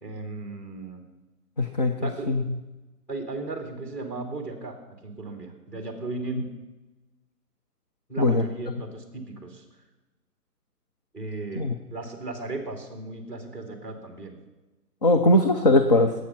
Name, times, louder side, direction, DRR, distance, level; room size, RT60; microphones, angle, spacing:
voice 1, 0.0-1.0 2.0-2.3 3.1-4.8 5.0-6.5 8.1-9.6 11.1-14.4, right 2 dB, 5° left, 3 dB, 2.1 m, -36 dB
voice 2, 1.6-2.4 8.2-8.4 11.6-11.7 15.0-16.1, left 1 dB, 25° left, 5 dB, 0.6 m, -20 dB
21.0 x 8.5 x 5.9 m, 1.1 s
hypercardioid pair, 160°, 48 cm